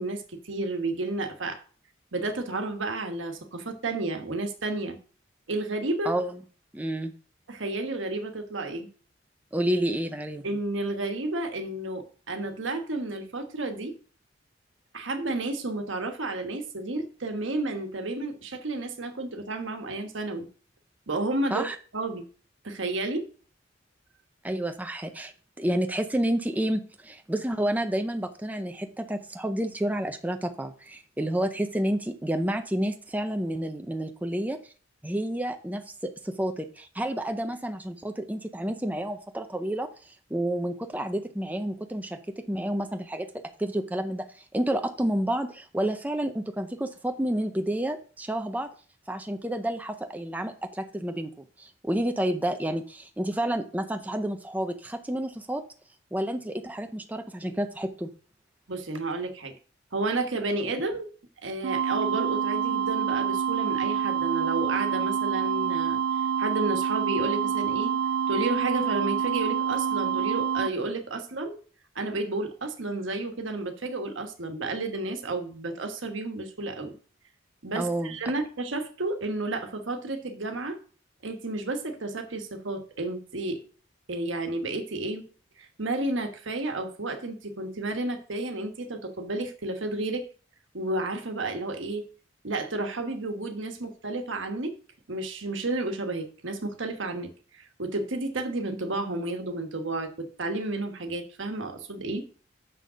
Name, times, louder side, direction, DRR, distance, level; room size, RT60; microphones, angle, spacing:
voice 1, 0.0-1.6 2.1-5.0 5.5-6.1 7.5-8.9 10.4-13.9 14.9-20.5 21.1-21.6 21.9-22.2 22.6-23.2 58.7-59.5 59.9-61.1 61.4-66.0 66.4-67.9 68.3-71.6 71.9-76.9 77.6-80.8 81.2-83.6 84.1-85.3 85.6-90.2 90.7-92.1 92.4-94.7 95.1-102.2, right 2 dB, 75° right, 5 dB, 1.3 m, -31 dB
voice 2, 6.0-6.4 6.7-7.1 9.5-10.4 21.5-21.8 24.4-25.3 25.6-34.7 35.0-43.3 43.6-48.7 49.1-51.3 51.6-55.6 56.1-58.1 77.8-78.1, right 1 dB, 10° right, 6 dB, 0.6 m, -30 dB
sound 1, 61.6-70.7, right 7 dB, 60° right, 0.4 m, -27 dB
6.8 x 6.2 x 5.0 m, 0.41 s
head